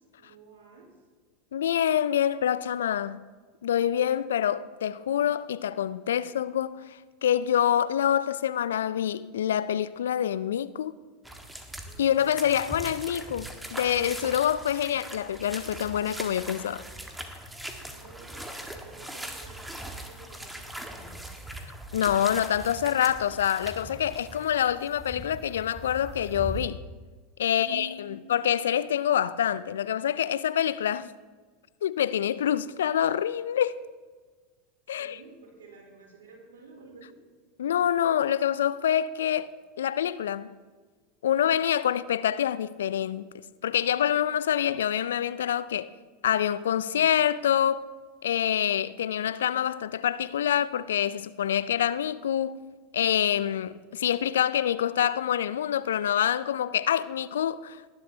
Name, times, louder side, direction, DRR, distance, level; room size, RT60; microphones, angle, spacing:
voice 1, 0.2-0.9 17.7-21.2 27.4-28.2 34.9-37.2, right 4 dB, 75° right, 3.6 m, -49 dB
voice 2, 1.5-3.2 3.6-10.9 12.0-16.8 21.9-26.8 27.4-31.1 31.8-33.8 34.9-35.2 37.6-39.5 39.8-40.5 41.2-43.3 43.6-45.9 46.2-47.9 48.2-52.6 52.9-57.8, left 10 dB, 75° left, 0.3 m, -26 dB
sound 1, 11.2-26.6, right 1 dB, 5° right, 1.5 m, -40 dB
19.0 x 11.0 x 2.7 m
figure-of-eight pair, 85°, 0 cm